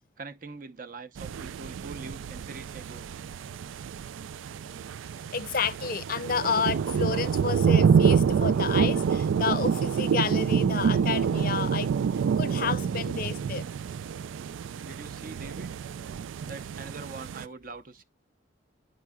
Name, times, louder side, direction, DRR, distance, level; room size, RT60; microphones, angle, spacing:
voice 1, 0.2-3.1 14.8-15.7 16.4-18.0, right 3 dB, 45° right, 0.7 m, -43 dB
sound 1, 1.2-17.4, right 6 dB, 80° right, 0.3 m, -27 dB
voice 2, 5.3-11.9 12.4-13.6, left 5 dB, 45° left, 0.6 m, -30 dB
9.2 x 6.0 x 2.3 m
head